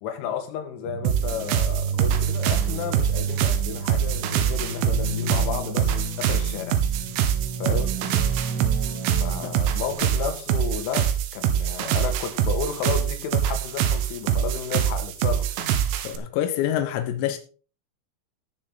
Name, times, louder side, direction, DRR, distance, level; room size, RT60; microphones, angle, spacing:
voice 1, 0.0-6.8 7.6-7.9 9.2-15.5, left 8 dB, 75° left, 4.1 m, -32 dB
sound 1, 0.8-9.9, right 4 dB, 50° right, 3.0 m, -31 dB
sound 2, 1.1-16.2, right 9 dB, 80° right, 3.7 m, -24 dB
voice 2, 16.0-17.4, left 11 dB, 90° left, 3.8 m, -26 dB
18.0 x 6.5 x 3.8 m
omnidirectional pair, 5.9 m